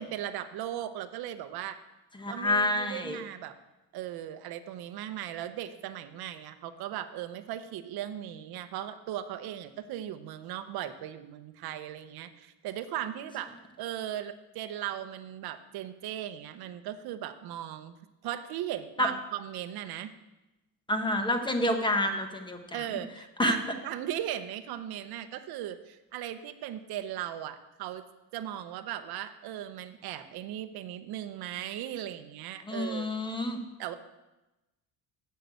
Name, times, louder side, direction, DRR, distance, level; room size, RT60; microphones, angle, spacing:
voice 1, 0.0-1.8 2.3-3.5 3.9-17.9 18.2-20.1 22.7-28.0 28.3-33.1 33.8-33.9, right 11 dB, 55° right, 9 dB, 0.8 m, -37 dB
voice 2, 2.2-3.2 19.0-19.1 20.9-22.8 23.4-23.6 32.7-33.6, left 1 dB, 10° left, 5 dB, 1.1 m, -28 dB
7.7 x 6.7 x 8.1 m, 1.0 s
cardioid pair, 125°, 44 cm